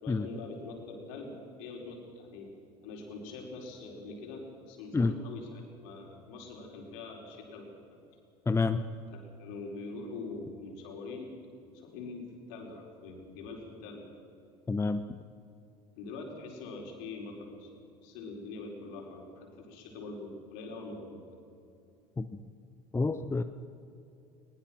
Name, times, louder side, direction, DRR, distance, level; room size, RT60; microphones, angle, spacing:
voice 1, 0.0-2.5 2.8-8.0 9.1-11.4 11.7-14.1 16.0-17.7 18.0-21.3, left 3 dB, 60° left, 1 dB, 5.0 m, -43 dB
voice 2, 8.5-8.8 14.7-15.0 22.2-22.3 22.9-23.4, left 3 dB, 15° left, 11 dB, 0.8 m, -28 dB
22.0 x 20.5 x 6.0 m, 2.7 s
figure-of-eight pair, 70°, 19 cm